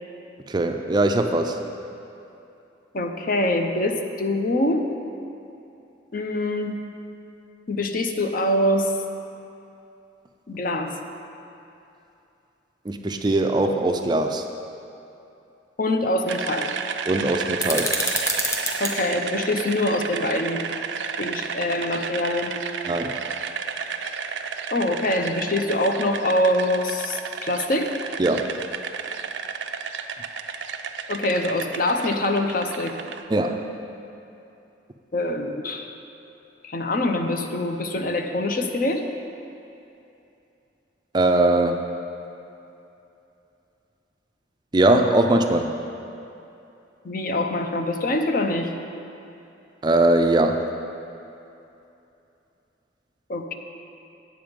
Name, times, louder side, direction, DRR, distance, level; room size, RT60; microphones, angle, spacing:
voice 1, 0.5-1.6 12.8-14.4 17.1-17.9 22.8-23.1 28.2-28.5 33.3-33.7 41.1-41.9 44.7-45.7 49.8-50.7, right 2 dB, 25° right, 5 dB, 0.4 m, -21 dB
voice 2, 2.9-4.9 6.1-6.8 7.7-8.9 10.5-11.0 15.8-16.7 18.8-20.6 21.1-22.6 24.7-28.0 31.1-33.0 35.1-35.9 36.6-39.0 47.0-48.7 53.3-53.5, left 1 dB, 50° left, 5 dB, 0.6 m, -24 dB
sound 1, 16.3-33.2, right 6 dB, 75° right, 0.5 m, -32 dB
sound 2, 17.6-18.9, left 1 dB, 15° left, 1.0 m, -26 dB
8.9 x 7.9 x 5.2 m, 2.8 s
head